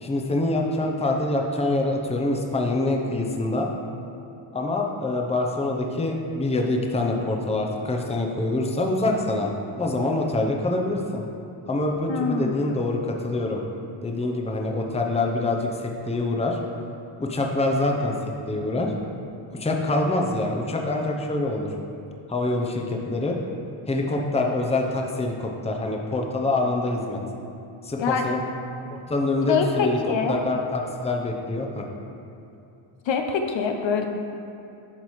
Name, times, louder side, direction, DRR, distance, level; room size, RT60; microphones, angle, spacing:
voice 1, 0.0-3.7 4.5-9.5 9.8-11.3 11.7-13.6 14.0-16.6 17.2-18.1 18.5-18.9 19.5-21.7 22.3-23.4 23.9-27.2 27.8-28.4 28.9-30.0 30.3-31.8, left 2 dB, 15° left, 1 dB, 0.7 m, -25 dB
voice 2, 12.1-12.6 28.0-28.3 29.5-30.4 33.1-34.1, left 5 dB, 65° left, 4 dB, 0.7 m, -24 dB
11.5 x 4.0 x 3.1 m, 2.7 s
cardioid pair, 90°, 49 cm